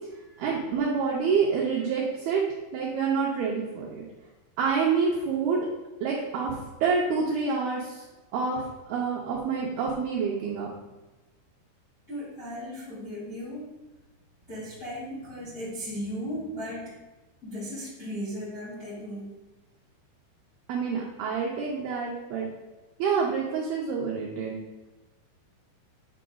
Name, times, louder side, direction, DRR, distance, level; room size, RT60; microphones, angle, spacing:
voice 1, 0.4-2.4 2.7-4.1 4.6-5.6 6.0-6.6 6.8-8.0 8.3-8.6 8.9-10.7 20.7-22.5 23.0-24.6, right 5 dB, 85° right, -2 dB, 2.2 m, -27 dB
voice 2, 12.1-13.7 14.5-16.9 17.4-19.2, equal, 40° left, -8 dB, 1.1 m, -36 dB
8.8 x 6.2 x 2.3 m, 1.1 s
omnidirectional pair, 5.4 m